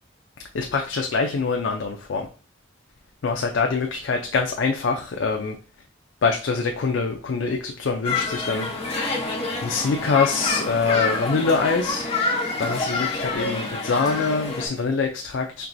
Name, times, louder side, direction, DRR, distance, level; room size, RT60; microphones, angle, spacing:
voice 1, 0.5-2.3 3.2-5.6 6.2-8.7 9.6-12.1 12.5-15.7, left 4 dB, 70° left, 3 dB, 0.4 m, -24 dB
sound 1, 8.0-14.7, left 3 dB, 30° left, 0.9 m, -27 dB
4.5 x 3.0 x 2.6 m, 0.37 s
head